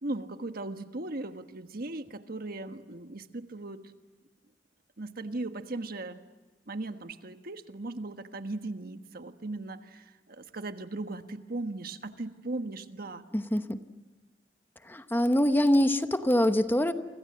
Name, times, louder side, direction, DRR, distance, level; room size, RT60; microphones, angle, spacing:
voice 1, 0.0-3.8 5.0-6.2 6.7-13.2, right 2 dB, 55° right, 8 dB, 1.4 m, -38 dB
voice 2, 13.3-13.8 14.9-16.9, left 1 dB, 10° left, 9 dB, 0.9 m, -24 dB
29.0 x 25.0 x 7.8 m, 1.2 s
head